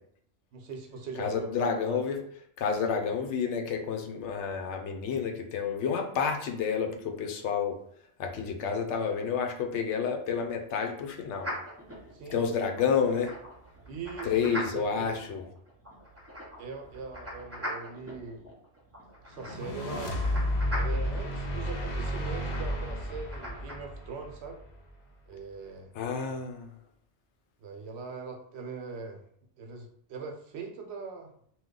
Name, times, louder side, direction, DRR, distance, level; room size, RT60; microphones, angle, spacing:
voice 1, 0.5-2.0 12.1-12.4 13.9-15.1 16.6-18.4 19.2-20.2 20.8-24.6 25.3-25.9 26.2-26.4 27.6-29.2 29.6-31.3, right 4 dB, 70° right, 2 dB, 0.9 m, -41 dB
voice 2, 1.2-2.2 2.6-7.8 8.2-11.5 12.3-13.3 14.2-15.4 26.0-26.7, left 6 dB, 80° left, 4 dB, 0.9 m, -30 dB
sound 1, 11.4-23.8, equal, 15° right, 0.6 m, -42 dB
sound 2, 19.4-24.7, left 1 dB, 50° left, 0.5 m, -32 dB
2.9 x 2.3 x 3.7 m, 0.64 s
omnidirectional pair, 1.2 m